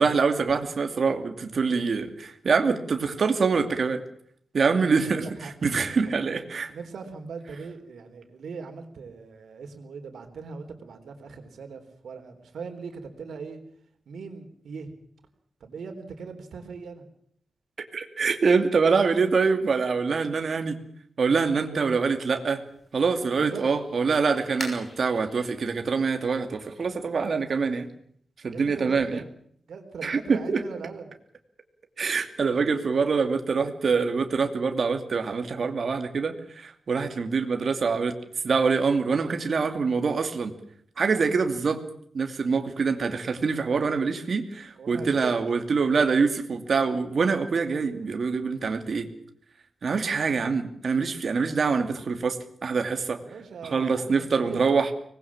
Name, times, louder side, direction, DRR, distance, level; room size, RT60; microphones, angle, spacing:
voice 1, 0.0-4.0 4.5-6.7 17.9-20.8 21.2-22.6 22.9-27.9 28.4-29.2 30.0-30.6 32.0-38.1 38.4-40.5 41.0-41.8 42.1-49.1 49.8-53.2 53.6-54.9, right 5 dB, 45° right, 6 dB, 2.6 m, -25 dB
voice 2, 4.7-5.5 6.0-6.1 6.7-13.6 14.1-14.9 15.6-17.0 21.6-21.9 23.3-23.6 28.5-29.2 29.7-31.1 44.8-45.3 53.2-54.9, right 5 dB, 75° right, 6 dB, 4.0 m, -40 dB
sound 1, 22.7-27.9, left 1 dB, 25° left, 6.1 m, -45 dB
25.0 x 20.0 x 7.4 m, 0.65 s
wide cardioid pair, 160°, 0 cm